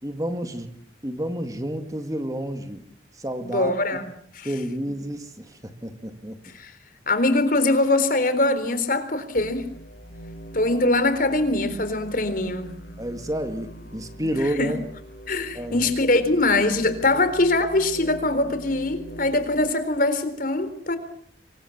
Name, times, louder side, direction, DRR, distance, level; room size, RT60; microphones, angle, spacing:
voice 1, 0.0-0.7 1.0-2.9 3.1-3.7 4.4-6.4 13.0-14.8 15.5-15.8 17.1-17.2, right 1 dB, 20° right, 8 dB, 2.1 m, -30 dB
voice 2, 3.4-4.5 6.5-6.7 7.1-9.7 10.5-12.8 14.6-14.7 15.3-21.0, left 2 dB, 50° left, 12 dB, 3.9 m, -22 dB
sound 1, 9.3-19.7, right 1 dB, 70° left, 3.9 m, -42 dB
26.5 x 24.0 x 7.3 m, 0.62 s
head